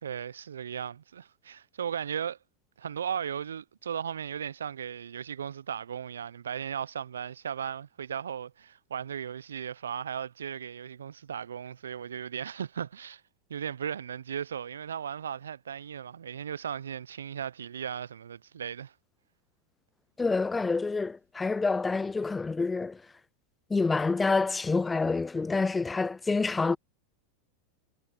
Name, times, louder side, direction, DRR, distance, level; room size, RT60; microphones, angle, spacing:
voice 1, 0.0-2.4 2.8-13.2 13.5-18.9, right 8 dB, 75° right, 1.0 m, -36 dB
voice 2, 20.2-23.0 23.7-26.8, left 4 dB, 15° left, 0.5 m, -27 dB
figure-of-eight pair, 90°, 0 cm